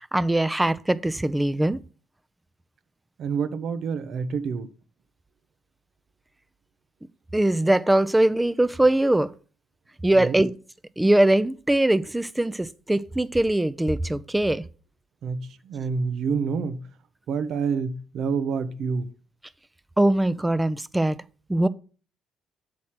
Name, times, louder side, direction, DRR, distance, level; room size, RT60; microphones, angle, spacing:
voice 1, 0.1-1.8 7.3-9.3 10.0-10.5 11.0-14.6 20.0-21.2 21.5-21.7, right 1 dB, 10° right, 0.5 m, -21 dB
voice 2, 3.2-4.7 10.2-10.4 15.2-16.8 17.3-19.1, right 5 dB, 60° right, 0.7 m, -28 dB
7.9 x 4.2 x 5.7 m
hypercardioid pair, 50°, 0 cm